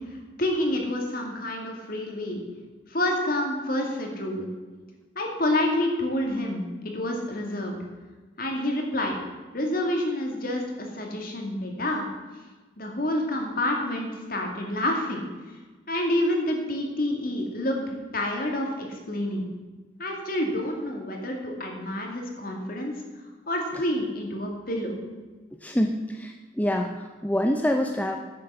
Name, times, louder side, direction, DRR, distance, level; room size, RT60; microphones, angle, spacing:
voice 1, 0.1-2.4 2.9-4.5 5.2-7.8 8.4-9.2 9.5-12.1 12.8-15.3 15.9-17.9 18.1-19.4 20.0-22.9 23.5-24.9, left 1 dB, 50° left, 1 dB, 2.4 m, -28 dB
voice 2, 25.6-28.2, equal, 10° left, 4 dB, 0.6 m, -26 dB
10.5 x 8.9 x 6.9 m, 1.3 s
head